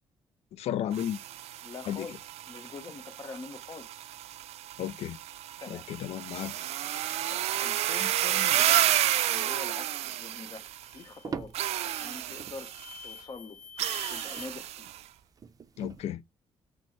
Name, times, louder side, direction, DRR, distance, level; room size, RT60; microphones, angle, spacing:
voice 1, 0.5-1.2 1.9-2.1 4.8-5.2 5.7-6.5 15.8-16.2, left 11 dB, 80° left, 0.4 m, -33 dB
sound 1, 0.9-10.9 11.5-13.0 13.8-15.0, right 13 dB, 90° right, 0.4 m, -31 dB
voice 2, 1.6-4.1 5.6-5.9 7.3-8.9 9.3-10.7 10.9-11.6 11.8-12.7 13.0-13.6 14.1-14.9, left 4 dB, 35° left, 0.9 m, -44 dB
sound 2, 10.5-16.0, right 5 dB, 35° right, 0.5 m, -46 dB
sound 3, 10.8-11.3 11.8-14.5, left 6 dB, 5° left, 0.6 m, -47 dB
6.0 x 2.0 x 4.3 m
cardioid pair, 135°, 11 cm